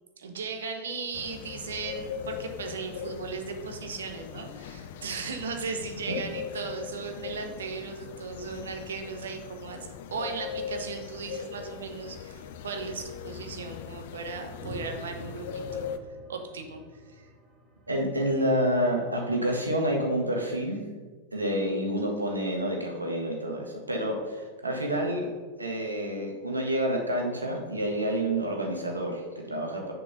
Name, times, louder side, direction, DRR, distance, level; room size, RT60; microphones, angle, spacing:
voice 1, 0.2-15.9 16.3-17.3, right 4 dB, 65° right, 5 dB, 1.0 m, -37 dB
sound 1, 1.1-16.0, left 7 dB, 55° left, 0.5 m, -40 dB
sound 2, 14.6-19.3, left 1 dB, 20° right, 1.4 m, -47 dB
voice 2, 17.9-20.8 21.3-25.3 25.6-29.9, equal, 80° right, 1 dB, 1.5 m, -28 dB
6.8 x 4.6 x 5.4 m, 1.4 s
figure-of-eight pair, 90°, 0 cm